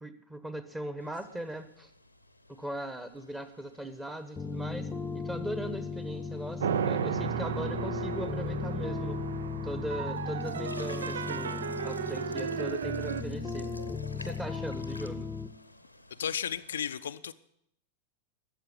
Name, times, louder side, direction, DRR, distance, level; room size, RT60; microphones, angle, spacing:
voice 1, 0.0-1.9 2.5-4.9 5.1-9.2 9.6-13.7 14.2-15.3, right 1 dB, 10° right, 10 dB, 1.2 m, -39 dB
sound 1, 1.0-16.8, left 1 dB, 85° left, 0.8 m, -50 dB
sound 2, 4.4-15.5, left 4 dB, 15° left, 0.8 m, -37 dB
sound 3, 6.6-13.2, right 8 dB, 65° right, 0.5 m, -34 dB
voice 2, 16.2-17.3, left 8 dB, 65° left, 11 dB, 0.4 m, -34 dB
13.0 x 7.6 x 9.3 m, 0.76 s
figure-of-eight pair, 90°, 0 cm